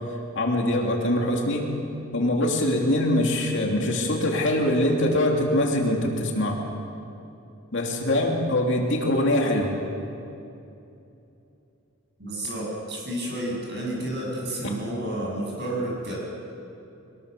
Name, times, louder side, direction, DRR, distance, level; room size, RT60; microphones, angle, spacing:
voice 1, 0.3-1.7 2.1-6.6 7.7-9.8 14.6-14.7, left 1 dB, 55° left, 0 dB, 2.8 m, -23 dB
voice 2, 12.2-16.2, right 1 dB, 50° right, -3 dB, 7.5 m, -30 dB
23.0 x 20.5 x 6.8 m, 2.7 s
head